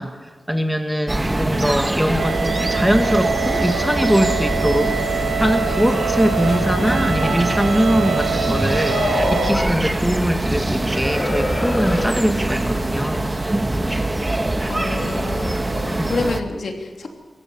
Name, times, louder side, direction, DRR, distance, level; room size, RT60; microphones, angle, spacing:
voice 1, 0.0-13.4 16.0-16.1, equal, 5° right, 5 dB, 1.8 m, -22 dB
sound 1, 1.1-16.4, right 2 dB, 20° right, 1.3 m, -23 dB
sound 2, 2.2-9.5, right 6 dB, 70° right, 1.3 m, -25 dB
sound 3, 4.6-13.0, left 2 dB, 45° left, 5.0 m, -30 dB
voice 2, 14.7-17.1, left 3 dB, 70° left, 3 dB, 3.1 m, -28 dB
26.0 x 15.0 x 7.0 m, 1.5 s
wide cardioid pair, 110°, 0 cm